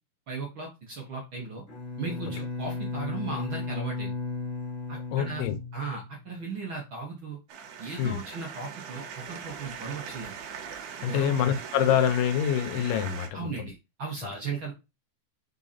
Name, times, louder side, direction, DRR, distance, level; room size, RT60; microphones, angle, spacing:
voice 1, 0.3-1.6 2.0-4.1 4.9-5.4 5.7-7.4 7.8-10.3 11.0-11.4 13.3-14.7, right 4 dB, 55° right, 1.5 m, -36 dB
Bowed string instrument, 1.7-6.4, left 3 dB, 50° left, 1.6 m, -35 dB
voice 2, 5.1-5.6 8.0-8.2 11.0-13.7, left 9 dB, 80° left, 2.4 m, -26 dB
sound 1, 7.5-13.3, right 7 dB, 75° right, 2.5 m, -40 dB
5.0 x 4.5 x 4.2 m
omnidirectional pair, 3.9 m